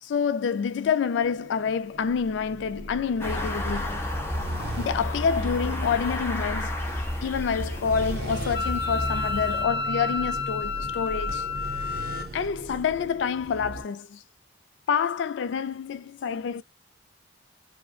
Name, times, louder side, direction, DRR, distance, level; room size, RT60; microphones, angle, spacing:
voice 1, 0.0-4.0 4.8-6.8 7.2-11.5 12.3-14.2 14.9-16.6, left 6 dB, 75° left, 0.3 m, -27 dB
sound 1, 1.2-13.8, right 1 dB, 55° right, 0.6 m, -38 dB
sound 2, 3.2-9.6, left 1 dB, 15° left, 0.5 m, -31 dB
Wind instrument woodwind instrument, 8.5-12.3, left 4 dB, 60° left, 0.7 m, -30 dB
2.7 x 2.0 x 2.3 m
head